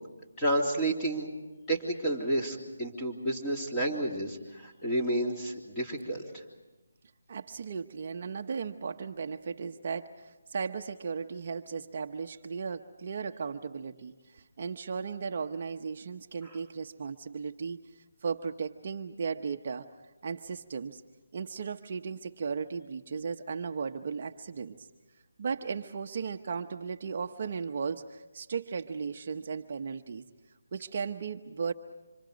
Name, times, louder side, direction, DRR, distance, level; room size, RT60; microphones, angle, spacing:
voice 1, 0.4-1.3 1.7-6.4, right 1 dB, 10° left, -2 dB, 3.4 m, -30 dB
voice 2, 7.3-19.9 20.2-21.0 21.3-24.9 25.4-30.2 30.7-31.7, right 5 dB, 40° right, 5 dB, 0.9 m, -36 dB
30.0 x 26.5 x 5.2 m, 1.1 s
figure-of-eight pair, 165°, 0 cm